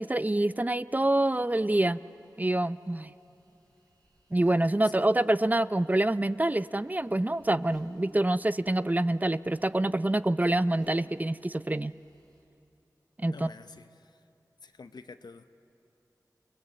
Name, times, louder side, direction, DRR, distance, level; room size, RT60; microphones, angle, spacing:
voice 1, 0.0-2.0 2.4-3.1 4.3-11.9 13.2-13.5, right 1 dB, 25° right, 15 dB, 0.5 m, -26 dB
sound 1, 0.9-12.4, equal, 70° right, 6.1 m, -60 dB
voice 2, 13.3-14.2 14.6-15.6, left 4 dB, 85° left, 10 dB, 0.9 m, -48 dB
30.0 x 20.0 x 8.0 m, 2.7 s
cardioid pair, 40°, 7 cm